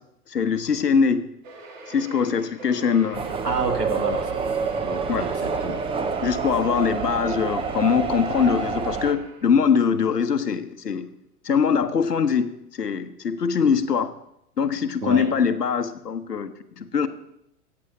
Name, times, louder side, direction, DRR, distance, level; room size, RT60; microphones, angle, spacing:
voice 1, 0.3-1.3 1.9-3.3 5.1-5.3 6.2-11.1 11.4-14.1 14.6-17.1, left 6 dB, 85° left, 11 dB, 1.0 m, -22 dB
sound 1, 1.4-9.7, right 2 dB, 55° right, 2.2 m, -42 dB
sound 2, 3.1-9.1, right 5 dB, 10° right, 0.6 m, -28 dB
voice 2, 3.4-4.6 4.8-5.8 15.0-15.3, right 3 dB, 90° right, 7 dB, 1.8 m, -29 dB
14.5 x 8.7 x 5.3 m, 0.80 s
figure-of-eight pair, 100°, 46 cm